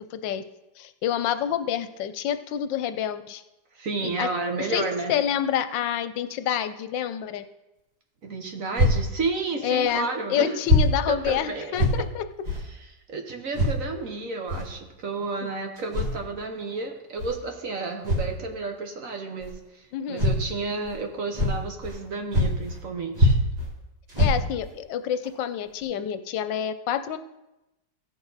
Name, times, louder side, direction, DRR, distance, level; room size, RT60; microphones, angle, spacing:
voice 1, 0.1-0.4 0.8-3.4 4.0-4.3 4.6-7.4 9.6-12.3 15.4-15.5 19.9-20.3 24.2-27.2, left 9 dB, 85° left, 11 dB, 1.3 m, -28 dB
voice 2, 3.7-5.1 8.2-10.6 11.1-11.8 12.7-23.4, right 3 dB, 50° right, 4 dB, 1.4 m, -31 dB
sound 1, 8.7-9.0 9.8-9.9 10.6-10.9 11.2-11.4 11.7-12.0 12.4-12.6 13.5-13.8 14.5-14.7 15.8-16.2 17.2-17.3 18.0-18.3 19.4-19.5 20.2-20.4 20.8-21.0 21.3-22.0 22.3-22.8 23.1-23.7 24.1-24.7 25.2-25.3 25.8-25.9, left 1 dB, 25° right, 1.6 m, -23 dB
16.0 x 6.5 x 4.0 m, 0.95 s
omnidirectional pair, 1.9 m